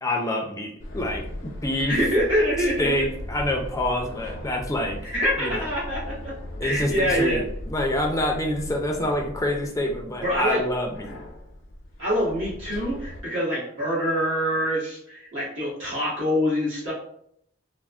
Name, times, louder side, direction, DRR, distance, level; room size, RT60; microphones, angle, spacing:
voice 1, 0.0-2.0 2.8-5.0 5.4-5.6 6.6-11.2, left 1 dB, 15° left, 1 dB, 0.4 m, -27 dB
sound 1, 0.8-13.2, equal, 70° left, 0.6 m, -38 dB
voice 2, 1.8-3.0 5.0-6.3 6.6-7.4 10.2-10.6 12.0-16.9, equal, 75° right, -8 dB, 1.4 m, -25 dB
3.4 x 2.0 x 2.4 m, 0.70 s
head